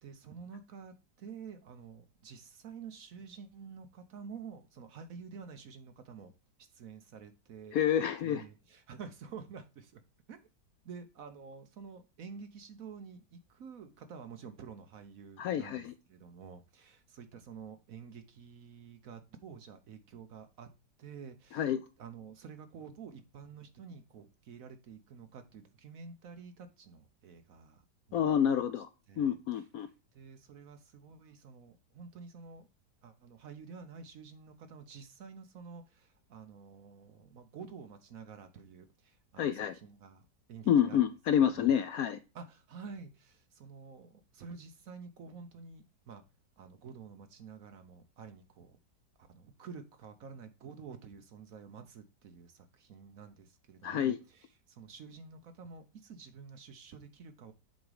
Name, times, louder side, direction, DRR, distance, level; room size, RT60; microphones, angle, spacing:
voice 1, 0.0-6.3 6.6-7.8 8.2-10.0 10.3-10.4 10.8-20.7 21.0-21.7 22.0-27.8 28.1-28.3 29.1-29.4 29.8-32.7 33.0-41.1 41.5-41.7 42.3-46.2 46.6-48.8 49.2-57.5, right 6 dB, 60° right, 1.0 m, -49 dB
voice 2, 7.7-8.4 15.4-15.9 21.5-21.8 28.1-28.9 29.2-29.9 39.4-39.7 40.7-42.2 53.8-54.2, left 9 dB, 70° left, 0.9 m, -28 dB
8.0 x 3.6 x 4.8 m
omnidirectional pair, 1.9 m